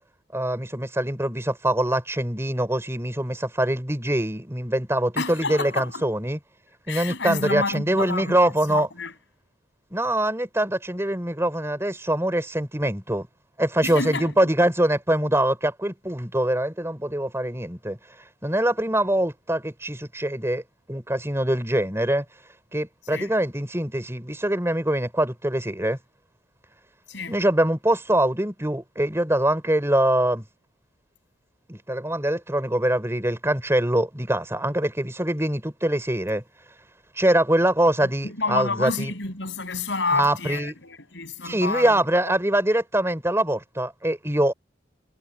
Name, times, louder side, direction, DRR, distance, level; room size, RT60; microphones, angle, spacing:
voice 1, 0.3-6.4 6.9-8.9 9.9-13.3 13.6-18.0 18.4-20.6 20.9-22.2 22.7-26.0 27.3-30.5 31.7-36.4 37.2-39.1 40.1-40.7 41.5-44.5, right 1 dB, 15° right, 4.3 m, -23 dB
voice 2, 5.2-6.0 6.9-9.1 13.8-14.3 23.1-23.3 27.1-27.4 38.0-42.3, left 3 dB, 65° left, 7.2 m, -29 dB
head